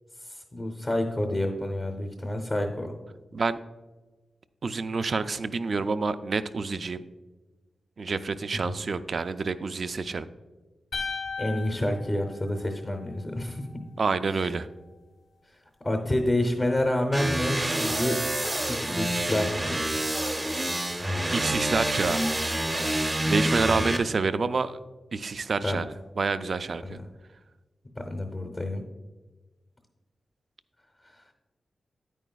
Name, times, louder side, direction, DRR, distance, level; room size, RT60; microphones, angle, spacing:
voice 1, 0.2-2.9 8.5-8.8 11.4-13.8 15.8-18.2 18.7-19.8 23.7-24.0 25.6-25.8 26.8-27.0 28.0-28.8, left 1 dB, 20° left, 4 dB, 0.7 m, -29 dB
voice 2, 4.6-7.0 8.0-10.3 14.0-14.7 21.3-22.2 23.3-24.8 25.1-27.0, right 4 dB, 45° right, 12 dB, 0.3 m, -28 dB
sound 1, 10.9-13.2, left 4 dB, 65° left, 0.9 m, -36 dB
sound 2, 17.1-24.0, right 1 dB, 15° right, 0.6 m, -27 dB
9.7 x 9.0 x 2.3 m, 1.3 s
wide cardioid pair, 170°, 0 cm